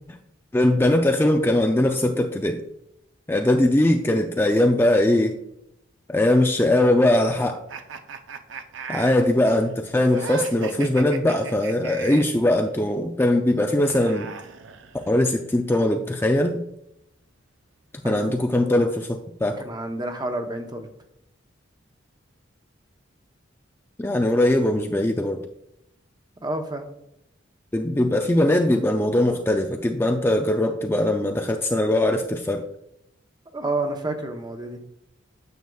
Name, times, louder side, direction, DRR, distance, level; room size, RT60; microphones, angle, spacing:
voice 1, 0.5-2.6 3.3-5.4 6.1-7.6 8.9-14.3 15.1-16.6 18.0-19.6 24.0-25.4 27.7-32.6, left 1 dB, 10° left, 3 dB, 0.4 m, -21 dB
sound 1, 7.7-12.4 13.6-15.3, right 5 dB, 70° right, 0.6 m, -37 dB
voice 2, 19.6-20.9 26.4-26.9 33.5-34.8, right 2 dB, 20° right, 5 dB, 0.8 m, -29 dB
9.3 x 6.7 x 2.3 m, 0.82 s
head